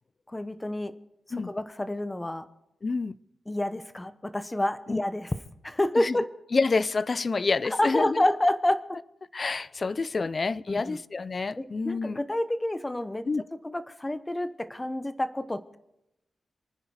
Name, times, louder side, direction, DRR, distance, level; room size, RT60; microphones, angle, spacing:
voice 1, 0.3-0.9 1.3-2.4 3.5-5.4 5.6-6.3 7.6-9.0 10.7-11.0 11.6-13.3 13.6-15.8, left 1 dB, 15° left, 0.9 m, -28 dB
voice 2, 2.8-3.2 4.9-5.0 6.0-6.2 6.5-8.2 9.3-12.2 13.3-13.4, left 4 dB, 35° left, 0.5 m, -28 dB
27.5 x 9.9 x 4.8 m
wide cardioid pair, 130°, 0 cm